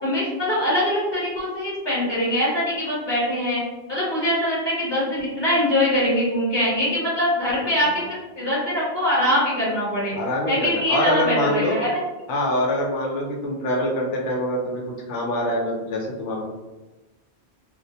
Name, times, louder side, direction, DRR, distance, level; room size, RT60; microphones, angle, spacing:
voice 1, 0.0-3.6 3.9-10.1 10.5-12.0, left 1 dB, 25° left, -8 dB, 1.1 m, -23 dB
voice 2, 10.1-11.8 12.3-14.8 15.1-16.4, left 1 dB, 85° left, -1 dB, 0.9 m, -24 dB
2.4 x 2.0 x 2.7 m, 1.1 s
omnidirectional pair, 1.2 m